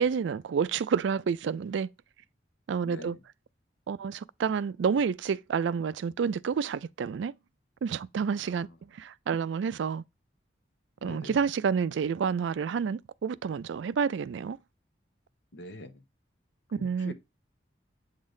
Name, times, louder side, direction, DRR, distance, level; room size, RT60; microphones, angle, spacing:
voice 1, 0.0-1.9 2.7-3.2 3.9-7.3 7.8-10.0 11.0-14.6 16.8-17.1, right 6 dB, 75° right, 0.3 m, -29 dB
voice 2, 2.8-3.2 8.4-8.6 11.0-11.4 15.5-16.0 16.8-17.1, left 2 dB, 75° left, 0.8 m, -44 dB
7.9 x 3.9 x 3.2 m
head